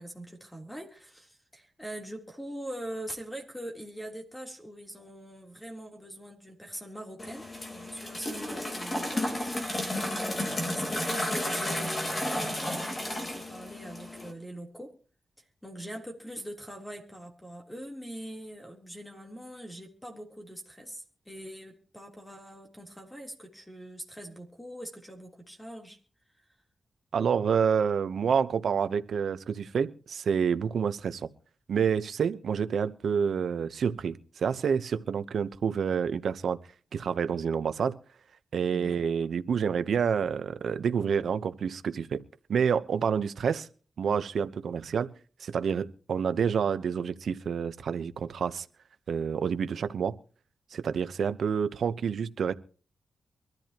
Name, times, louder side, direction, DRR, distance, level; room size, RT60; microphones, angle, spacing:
voice 1, 0.0-14.9 15.6-26.0 38.7-39.0, right 1 dB, 5° left, 2 dB, 3.5 m, -43 dB
sound 1, 7.2-14.3, left 1 dB, 30° left, 3.7 m, -32 dB
voice 2, 27.1-31.3 31.7-36.6 36.9-38.0 38.5-42.2 42.5-43.7 44.0-45.1 45.4-48.7 49.1-50.2 50.7-52.5, right 7 dB, 75° right, 12 dB, 0.9 m, -28 dB
24.0 x 13.5 x 3.0 m, 0.40 s
wide cardioid pair, 115°, 0 cm